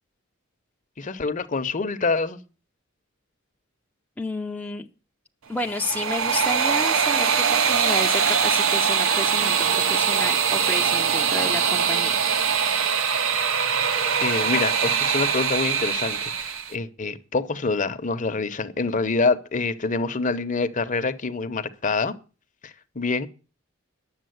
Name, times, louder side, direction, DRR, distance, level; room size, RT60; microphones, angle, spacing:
voice 1, 1.0-2.4 14.2-22.1 22.6-23.3, left 4 dB, 40° left, 0.8 m, -26 dB
voice 2, 4.2-4.9 5.5-12.3, left 2 dB, 5° left, 0.5 m, -31 dB
sound 1, 5.6-16.7, right 7 dB, 80° right, 0.9 m, -22 dB
10.5 x 7.3 x 7.8 m
head